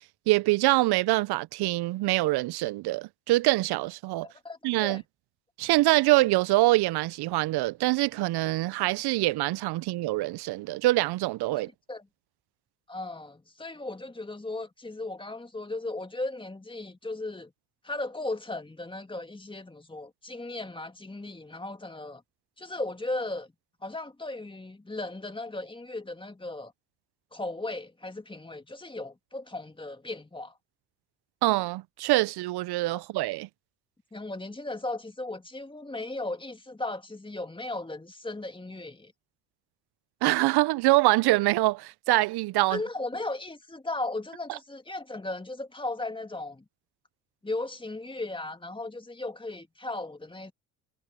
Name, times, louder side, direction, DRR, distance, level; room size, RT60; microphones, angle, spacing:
voice 1, 0.3-4.3 4.6-5.0 5.6-11.7 31.4-33.5 40.2-42.8, right 19 dB, 60° right, 0.8 m, -24 dB
voice 2, 4.2-5.0 11.5-11.6 11.9-12.1 12.9-17.5 17.8-22.2 22.6-23.5 23.8-26.7 27.3-30.5 34.1-39.1 42.7-46.6 47.4-50.5, left 2 dB, 10° left, 2.2 m, -36 dB
hypercardioid pair, 60°, 44 cm